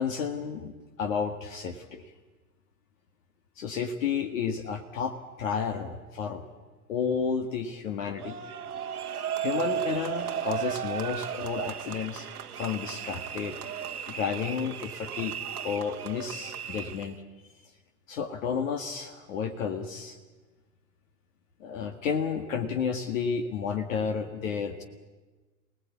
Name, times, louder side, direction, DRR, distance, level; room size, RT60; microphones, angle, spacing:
voice 1, 0.0-2.1 3.6-6.4 6.9-8.4 9.4-12.3 12.5-13.6 14.1-15.4 15.6-17.2 18.1-20.2 21.6-24.8, left 6 dB, 60° left, 6 dB, 1.9 m, -31 dB
sound 1, 8.2-17.1, right 9 dB, 75° right, 1.2 m, -35 dB
24.5 x 18.5 x 8.4 m, 1.3 s
figure-of-eight pair, 105°, 45 cm